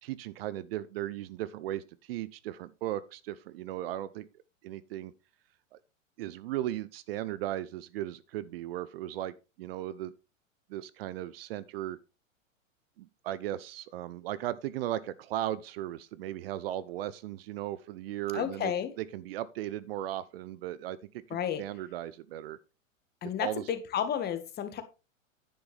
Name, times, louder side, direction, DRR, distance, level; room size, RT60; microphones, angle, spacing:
voice 1, 0.0-4.3 4.6-5.1 5.7-5.8 6.2-10.1 10.7-12.0 13.0-18.7 19.0-22.6 23.4-23.7, right 13 dB, 45° right, 0.7 m, -36 dB
voice 2, 18.3-18.9 21.3-21.6 23.2-24.8, left 9 dB, 25° left, 1.7 m, -32 dB
10.5 x 9.6 x 3.4 m
figure-of-eight pair, 105°, 40 cm